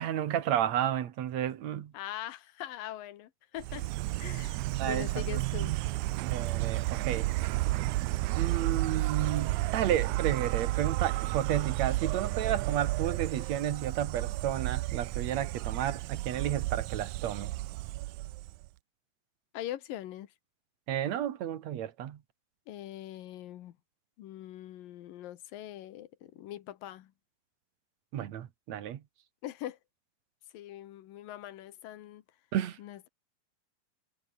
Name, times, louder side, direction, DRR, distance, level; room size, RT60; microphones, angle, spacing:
voice 1, 0.0-1.9 4.8-5.4 6.2-7.3 8.4-17.5 20.9-22.2 28.1-29.0 32.5-32.8, right 11 dB, 60° right, 2.4 m, -32 dB
voice 2, 1.9-3.9 4.2-5.7 19.5-20.3 22.7-23.8 24.2-27.1 29.4-29.8 30.5-32.2 32.8-33.1, left 13 dB, 75° left, 3.0 m, -42 dB
Insect, 3.6-18.7, right 19 dB, 85° right, 1.7 m, -32 dB
omnidirectional pair, 4.1 m